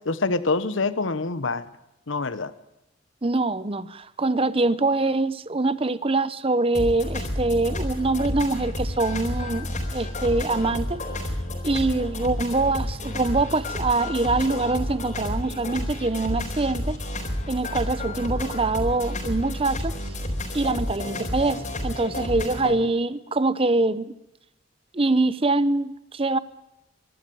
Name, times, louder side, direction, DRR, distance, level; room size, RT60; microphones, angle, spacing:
voice 1, 0.0-1.6 2.1-2.5, left 3 dB, 70° left, 14 dB, 1.1 m, -25 dB
voice 2, 3.2-11.0 11.6-17.0 17.5-19.9 20.5-24.2 24.9-26.4, right 2 dB, 30° right, 16 dB, 0.8 m, -24 dB
sound 1, 6.7-22.8, left 1 dB, 40° left, 4.3 m, -30 dB
23.5 x 12.5 x 9.3 m, 0.93 s
head